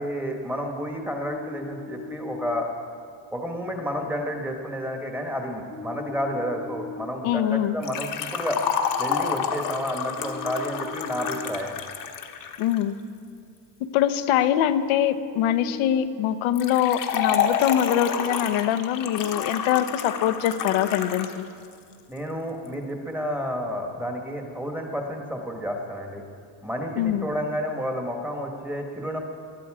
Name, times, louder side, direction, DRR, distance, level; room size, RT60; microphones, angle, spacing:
voice 1, 0.0-2.7 3.3-8.6 9.0-11.7 22.1-26.2 26.6-29.2, equal, 5° right, 2 dB, 1.5 m, -30 dB
sound 1, 1.2-2.6 5.7-7.1 10.2-11.6 14.7-16.1, left 5 dB, 20° left, 1.1 m, -39 dB
voice 2, 7.2-7.8 12.6-13.0 13.8-21.5 27.0-27.3, left 11 dB, 75° left, 12 dB, 0.9 m, -23 dB
Liquid, 7.8-12.8 16.6-21.4 21.6-21.7 22.7-22.8, left 7 dB, 40° left, 1.2 m, -29 dB
20.0 x 12.0 x 4.9 m, 2.3 s
cardioid pair, 155°, 49 cm